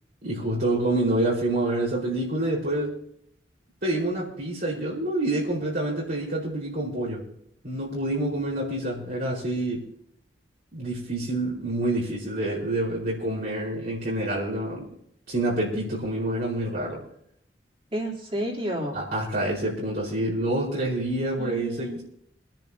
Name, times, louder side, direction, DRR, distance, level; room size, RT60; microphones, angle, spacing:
voice 1, 0.2-2.9 3.8-7.3 7.6-9.8 10.7-14.9 15.3-17.0 18.9-22.0, right 1 dB, 60° right, -7 dB, 5.0 m, -27 dB
voice 2, 17.9-19.0 21.4-22.0, right 1 dB, 35° right, -2 dB, 3.7 m, -31 dB
25.5 x 10.5 x 2.9 m, 0.70 s
head